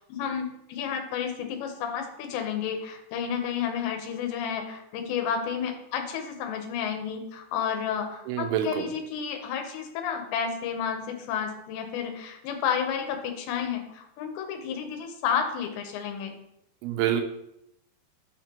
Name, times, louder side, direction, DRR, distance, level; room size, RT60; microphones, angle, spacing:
voice 1, 0.0-16.4, left 7 dB, 80° left, 4 dB, 3.1 m, -31 dB
voice 2, 8.3-8.9 16.8-17.2, right 10 dB, 85° right, 4 dB, 3.1 m, -26 dB
7.6 x 5.6 x 2.9 m, 0.81 s
omnidirectional pair, 5.2 m